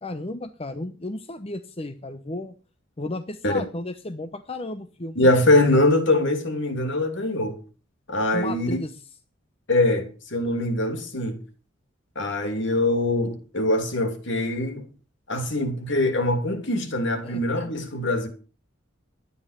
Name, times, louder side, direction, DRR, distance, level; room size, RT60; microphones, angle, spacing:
voice 1, 0.0-2.5 3.0-5.3 8.3-8.9 17.2-17.4, left 2 dB, 30° left, 0.9 m, -33 dB
voice 2, 5.1-7.6 8.1-8.8 9.7-11.4 12.1-14.9 15.3-18.3, left 1 dB, 60° left, 2.9 m, -23 dB
12.5 x 9.5 x 6.7 m
head